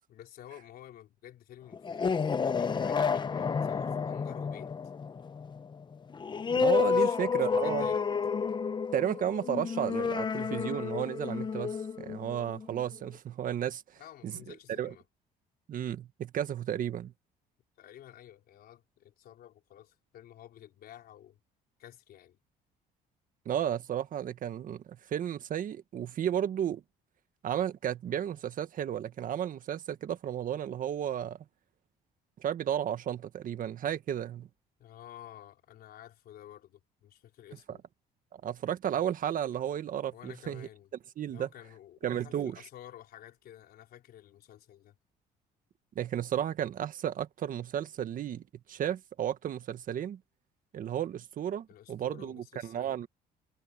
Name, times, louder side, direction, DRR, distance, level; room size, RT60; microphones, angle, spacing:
voice 1, 0.1-4.7 6.9-8.1 14.0-15.0 17.8-21.4 21.8-22.4 34.8-37.8 40.1-40.9 41.3-45.0 51.7-53.0, left 11 dB, 65° left, 4.3 m, -51 dB
sound 1, 1.7-12.9, left 5 dB, 25° left, 0.8 m, -30 dB
voice 2, 6.5-7.9 8.9-13.8 14.2-14.9 15.7-17.1 23.5-26.8 27.4-31.4 32.4-34.5 37.7-37.8 38.3-40.7 41.2-41.5 42.0-42.6 46.0-50.2 50.7-53.1, right 10 dB, 55° right, 1.6 m, -33 dB
cardioid pair, 110°, 17 cm